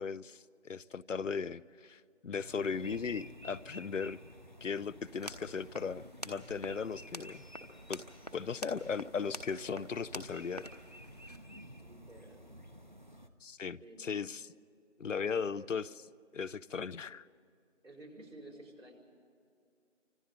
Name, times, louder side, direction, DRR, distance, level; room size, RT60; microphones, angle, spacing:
voice 1, 0.0-4.2 4.6-7.4 7.9-8.0 8.3-10.6 13.4-14.5 15.0-15.8 16.3-17.2, left 5 dB, 80° left, 20 dB, 0.7 m, -37 dB
sound 1, 2.3-13.3, equal, 40° right, 0.8 m, -52 dB
voice 2, 2.5-3.1 11.8-12.5 13.8-14.3 15.5-15.7 16.9-17.0 17.8-18.9, right 1 dB, 85° right, 0 dB, 5.1 m, -52 dB
sound 2, 5.1-11.4, equal, 30° left, 1.0 m, -48 dB
27.5 x 25.0 x 4.0 m, 2.4 s
figure-of-eight pair, 180°, 37 cm